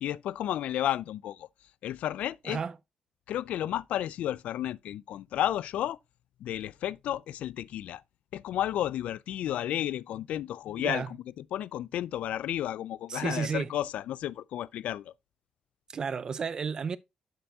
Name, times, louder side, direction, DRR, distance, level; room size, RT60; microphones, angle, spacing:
voice 1, 0.0-1.5 1.8-2.6 3.3-6.0 6.4-8.0 8.3-15.1, left 12 dB, 80° left, 0.3 m, -32 dB
voice 2, 13.1-13.7 15.9-17.0, right 6 dB, 30° right, 0.4 m, -32 dB
7.5 x 7.0 x 2.7 m
wide cardioid pair, 175°, 2 cm